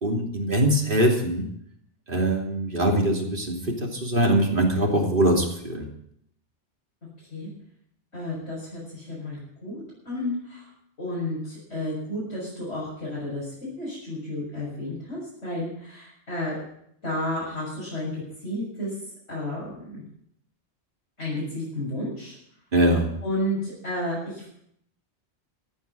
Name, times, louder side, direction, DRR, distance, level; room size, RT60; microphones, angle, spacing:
voice 1, 0.0-1.5 2.1-5.9 22.7-23.1, right 1 dB, 50° right, 0 dB, 3.1 m, -22 dB
voice 2, 8.1-9.8 10.1-10.6 11.0-13.5 13.8-16.6 17.0-18.9 19.3-20.0 21.2-22.4 23.2-24.5, left 1 dB, 80° left, -9 dB, 7.1 m, -32 dB
14.5 x 8.7 x 8.2 m, 0.71 s
omnidirectional pair, 1.2 m